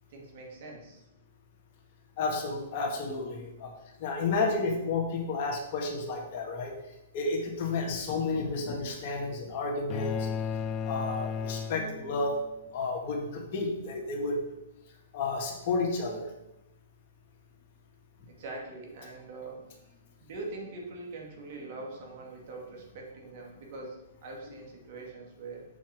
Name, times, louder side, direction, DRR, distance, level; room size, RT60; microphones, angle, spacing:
voice 1, 0.1-1.0 18.3-19.6 20.2-25.6, right 3 dB, 55° right, -1 dB, 2.5 m, -43 dB
voice 2, 2.2-3.7 4.0-6.7 7.1-10.3 10.9-12.3 12.7-14.4 15.1-16.2, left 3 dB, 50° left, 1 dB, 1.8 m, -31 dB
sound 1, 9.9-12.4, left 6 dB, 30° left, 0.4 m, -34 dB
7.2 x 4.5 x 6.0 m, 0.92 s
hypercardioid pair, 135°, 0 cm